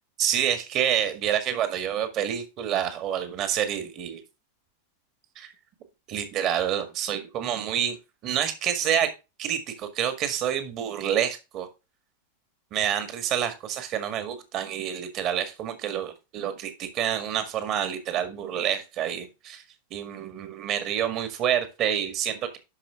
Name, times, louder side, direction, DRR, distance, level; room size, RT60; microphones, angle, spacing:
voice 1, 0.2-4.2 5.4-5.5 6.1-8.0 8.2-9.1 9.4-11.7 12.7-19.6 19.9-22.6, right 9 dB, 35° right, 9 dB, 1.9 m, -28 dB
11.5 x 5.3 x 3.7 m, 0.27 s
figure-of-eight pair, 90°, 0 cm